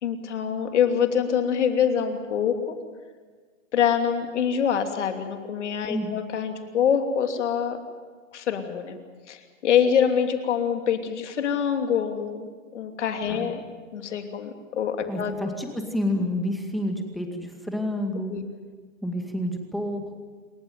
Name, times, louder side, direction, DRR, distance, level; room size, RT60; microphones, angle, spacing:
voice 1, 0.0-2.8 3.7-7.8 8.3-9.0 9.3-13.6 13.9-15.3 18.3-18.4, left 8 dB, 60° left, 5 dB, 3.0 m, -25 dB
voice 2, 5.9-6.2 13.3-13.5 15.1-18.3 19.0-20.2, left 1 dB, ahead, 3 dB, 2.1 m, -29 dB
27.5 x 15.0 x 9.5 m, 1.5 s
hypercardioid pair, 150°, 40 cm